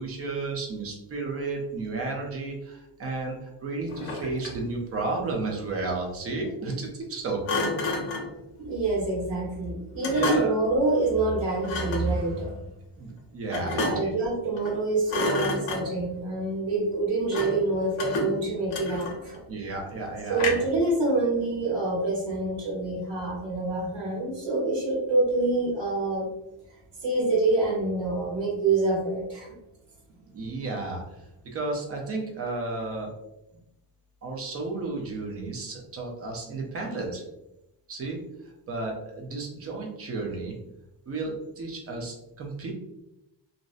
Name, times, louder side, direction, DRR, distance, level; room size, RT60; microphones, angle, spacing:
voice 1, 0.0-7.4 10.1-10.5 13.0-14.1 19.5-20.6 30.2-31.0 31.5-33.1 34.2-37.2 37.9-38.2 38.7-40.6 41.1-42.7, right 3 dB, 30° right, 0 dB, 0.5 m, -32 dB
Thump thud, 3.9-4.7 7.5-8.4 10.0-10.7 11.6-12.1 13.5-14.2 14.6-14.8 15.1-16.1 17.3-17.7 18.0-19.4 20.4-20.8, left 3 dB, 75° left, 0.8 m, -30 dB
voice 2, 8.6-12.5 13.6-19.4 20.3-26.3 27.0-29.6, right 2 dB, 70° right, -5 dB, 1.2 m, -26 dB
2.6 x 2.0 x 2.4 m, 0.89 s
cardioid pair, 165°, 47 cm